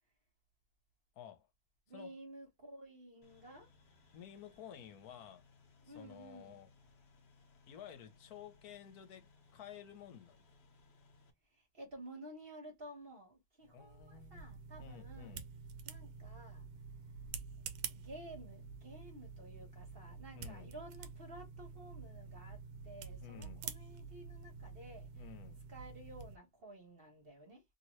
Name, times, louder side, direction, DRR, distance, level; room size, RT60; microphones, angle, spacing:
voice 1, 1.1-1.5 1.9-2.2 4.1-5.4 5.8-6.7 7.7-10.5 13.7-15.5 20.3-20.7 23.2-23.7 25.2-25.6, left 9 dB, 75° left, 1.2 m, -53 dB
voice 2, 1.9-3.7 5.8-6.6 11.5-15.4 15.8-16.6 17.9-25.2 25.7-27.6, right 1 dB, 40° right, 1.3 m, -53 dB
sound 1, 3.2-11.3, left 4 dB, 45° left, 1.1 m, -66 dB
sound 2, 13.6-26.4, right 6 dB, 75° right, 1.1 m, -48 dB
2.9 x 2.9 x 3.0 m
omnidirectional pair, 1.7 m